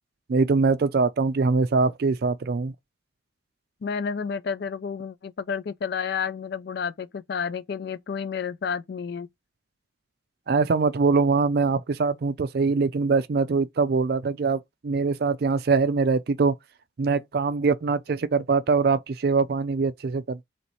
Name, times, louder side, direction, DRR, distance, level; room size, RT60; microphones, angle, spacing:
voice 1, 0.3-2.7 10.5-16.5 17.0-20.4, right 4 dB, 55° right, 0.4 m, -23 dB
voice 2, 3.8-9.3, left 6 dB, 55° left, 0.4 m, -30 dB
3.2 x 3.0 x 4.0 m
head